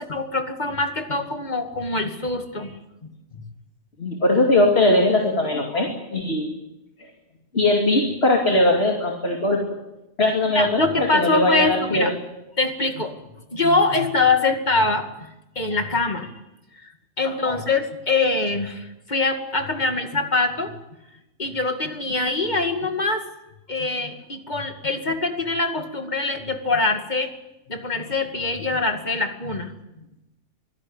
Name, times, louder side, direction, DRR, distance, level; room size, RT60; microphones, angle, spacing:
voice 1, 0.0-2.8 3.0-3.1 10.5-12.1 12.6-13.1 13.5-15.3 15.6-16.3 16.8-16.9 17.2-20.7 21.4-23.2 23.7-27.3 27.7-30.0, left 3 dB, 35° left, 5 dB, 2.5 m, -24 dB
voice 2, 4.0-6.5 7.5-9.6 10.2-12.1 17.4-17.6, left 2 dB, 55° left, 1 dB, 3.1 m, -20 dB
24.5 x 16.5 x 9.0 m, 0.96 s
omnidirectional pair, 1.3 m